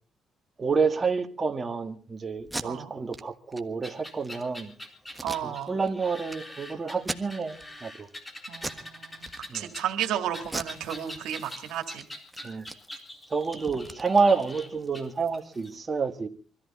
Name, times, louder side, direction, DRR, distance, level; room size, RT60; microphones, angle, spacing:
voice 1, 0.6-4.7 5.4-8.1 9.5-9.7 12.4-12.7 13.3-16.3, right 4 dB, 30° right, 1.8 m, -28 dB
Packing tape duct tape, 2.4-2.7 3.1-3.2 3.5-3.6 4.1-4.4 5.1-5.9 6.3-6.4 7.0-7.6 8.0-8.2 8.6-8.9 9.2-9.8 10.4-11.6 11.9-12.0 12.3-14.9, right 2 dB, 10° right, 1.4 m, -38 dB
sound 1, 3.8-15.7, left 1 dB, 20° left, 4.1 m, -44 dB
voice 2, 5.2-5.7 8.5-9.3 9.5-12.0, right 10 dB, 90° right, 2.1 m, -33 dB
24.0 x 14.0 x 4.2 m
cardioid pair, 90°, 0 cm